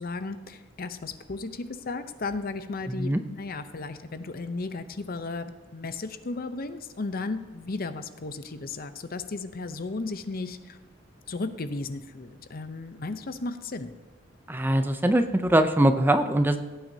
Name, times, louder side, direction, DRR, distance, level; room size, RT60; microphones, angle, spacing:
voice 1, 0.0-10.8 11.3-13.9, left 3 dB, 50° left, 11 dB, 0.7 m, -35 dB
voice 2, 2.9-3.2 14.5-16.6, right 1 dB, 10° right, 9 dB, 0.5 m, -22 dB
17.0 x 9.1 x 2.8 m, 1.3 s
head